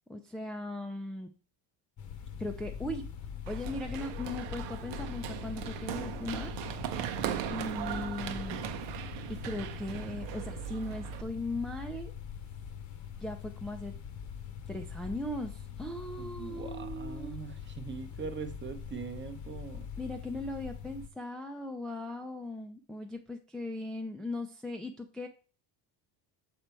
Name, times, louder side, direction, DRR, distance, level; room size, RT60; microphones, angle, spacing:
voice 1, 0.1-1.3 2.4-3.1 3.5-6.5 7.5-8.6 9.3-12.1 13.2-13.9 14.7-17.4 20.0-25.3, left 1 dB, ahead, 2 dB, 0.5 m, -38 dB
sound 1, 2.0-21.1, left 8 dB, 40° left, 0.9 m, -43 dB
Run, 3.5-11.2, right 10 dB, 80° right, 0.9 m, -38 dB
voice 2, 16.2-19.9, right 5 dB, 25° right, 6 dB, 0.9 m, -42 dB
6.8 x 4.4 x 4.4 m, 0.37 s
cardioid pair, 125°, 44 cm